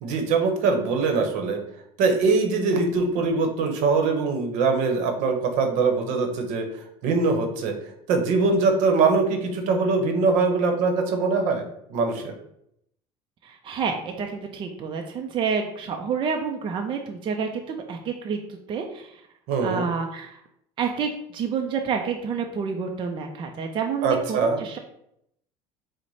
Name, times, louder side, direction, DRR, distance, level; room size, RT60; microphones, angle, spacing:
voice 1, 0.0-1.6 2.0-6.7 7.0-7.7 8.1-11.6 11.9-12.3 19.5-19.9 24.0-24.6, right 4 dB, 70° right, 4 dB, 0.8 m, -22 dB
voice 2, 13.4-19.2 19.6-20.4 20.8-24.8, right 6 dB, 40° right, 3 dB, 0.5 m, -29 dB
4.7 x 2.1 x 4.0 m, 0.76 s
supercardioid pair, 105°, 13 cm